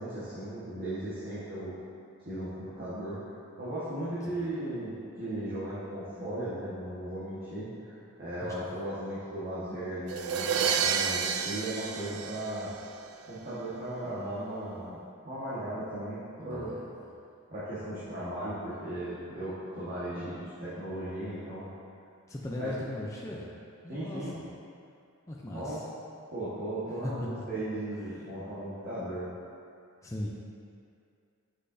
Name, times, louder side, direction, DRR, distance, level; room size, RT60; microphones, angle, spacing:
voice 1, 0.0-1.7 2.2-3.2 3.6-12.7 13.3-15.0 15.2-16.7 17.5-21.7 22.6-22.7 23.9-24.4 25.5-25.9 26.3-29.3, right 1 dB, 45° right, -12 dB, 1.5 m, -36 dB
sound 1, 10.1-13.0, right 7 dB, 75° right, 0.4 m, -30 dB
voice 2, 16.4-16.8 22.3-23.5 23.8-24.4 25.3-25.8 27.0-27.1 28.1-28.2 30.0-30.3, left 1 dB, 15° left, -4 dB, 0.5 m, -38 dB
7.6 x 6.6 x 2.7 m, 2.4 s
head